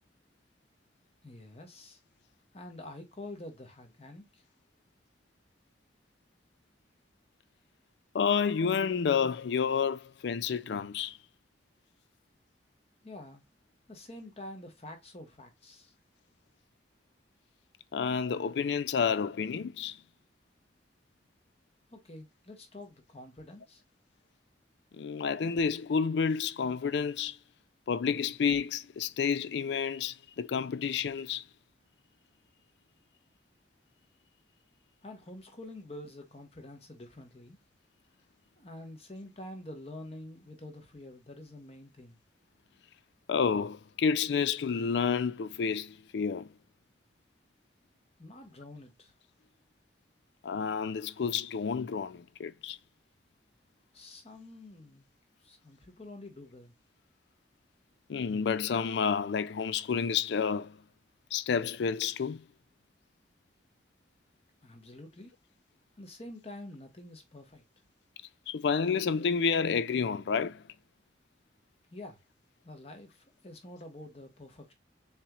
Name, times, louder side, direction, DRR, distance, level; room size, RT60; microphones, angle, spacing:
voice 1, 1.2-2.0 2.5-4.4 13.0-13.4 13.9-15.9 21.9-23.8 35.0-37.6 38.6-42.2 48.2-49.1 53.9-55.1 55.4-56.7 64.6-65.3 66.0-67.6 71.9-72.2 72.6-74.7, left 1 dB, 35° left, 1.1 m, -47 dB
voice 2, 8.1-11.2 17.9-20.0 25.0-27.4 27.9-31.4 43.3-46.5 50.4-52.8 58.1-60.8 61.3-62.4 68.5-70.6, left 6 dB, 65° left, 0.4 m, -30 dB
7.0 x 3.0 x 2.3 m
head